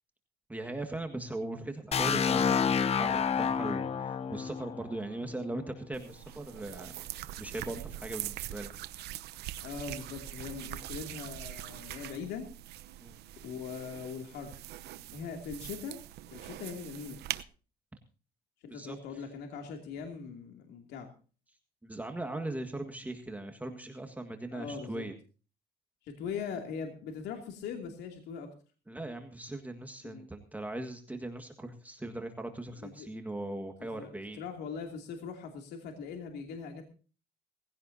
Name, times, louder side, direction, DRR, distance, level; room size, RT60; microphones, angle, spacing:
voice 1, 0.5-8.7 13.0-13.2 18.7-19.0 21.8-25.1 28.9-34.4, right 2 dB, 10° right, 5 dB, 1.8 m, -39 dB
sound 1, 1.9-5.7, left 7 dB, 40° left, 0.9 m, -29 dB
Hand lotion application, 5.9-17.4, right 14 dB, 80° right, 0.9 m, -43 dB
voice 2, 9.6-12.5 13.4-14.6 15.1-16.0 16.3-17.2 18.6-21.1 24.5-25.0 26.0-28.5 30.0-30.3 32.8-33.1 33.9-34.1 34.4-36.8, left 6 dB, 80° left, 3 dB, 2.7 m, -41 dB
19.5 x 16.0 x 2.7 m, 0.37 s
cardioid pair, 110°, 17 cm